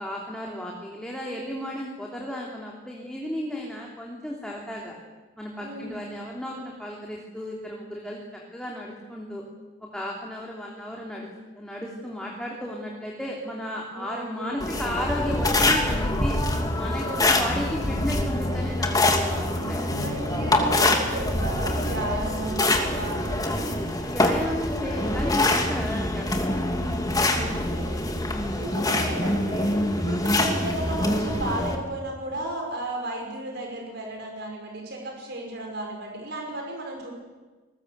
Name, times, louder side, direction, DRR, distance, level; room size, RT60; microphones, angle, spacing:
voice 1, 0.0-4.9 5.4-8.2 8.5-9.4 9.8-11.3 11.6-16.4 16.7-19.8 24.0-27.7 28.2-28.6, left 1 dB, 5° left, -2 dB, 3.1 m, -34 dB
voice 2, 5.6-6.0 13.9-15.0 17.0-17.4 19.3-23.6 27.2-28.2 28.6-37.1, right 1 dB, 55° right, 1 dB, 5.6 m, -34 dB
sound 1, 14.6-31.8, left 1 dB, 20° left, 2.8 m, -25 dB
sound 2, 15.6-22.2, left 1 dB, 60° left, 1.6 m, -33 dB
29.0 x 21.0 x 8.1 m, 1.3 s
head